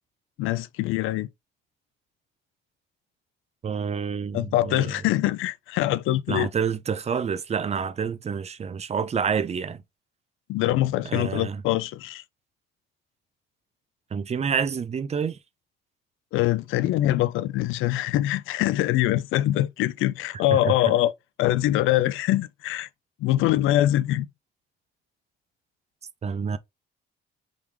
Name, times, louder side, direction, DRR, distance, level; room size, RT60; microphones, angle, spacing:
voice 1, 0.4-1.3 4.3-6.5 10.5-12.2 16.3-21.1 21.4-22.9 23.2-24.3, left 14 dB, 90° left, 0.4 m, -23 dB
voice 2, 3.6-4.9 6.3-9.8 11.1-11.6 14.1-15.4 20.5-20.6 26.2-26.6, right 6 dB, 35° right, 0.5 m, -28 dB
3.7 x 3.1 x 3.4 m
cardioid pair, 90°, 20 cm